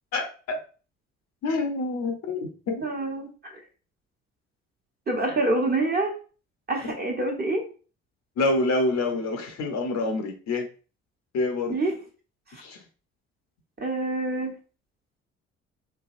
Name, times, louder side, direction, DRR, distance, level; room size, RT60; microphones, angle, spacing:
voice 1, 0.1-0.6 1.4-2.8 6.8-6.9 8.4-10.7 11.3-11.8 12.6-12.8, left 2 dB, 55° left, 4 dB, 0.7 m, -27 dB
voice 2, 2.8-3.5 5.1-6.1 6.7-7.6 11.7-12.0 13.8-14.6, right 2 dB, 30° right, 0 dB, 1.1 m, -26 dB
3.2 x 2.3 x 2.5 m, 0.37 s
hypercardioid pair, 55°, 32 cm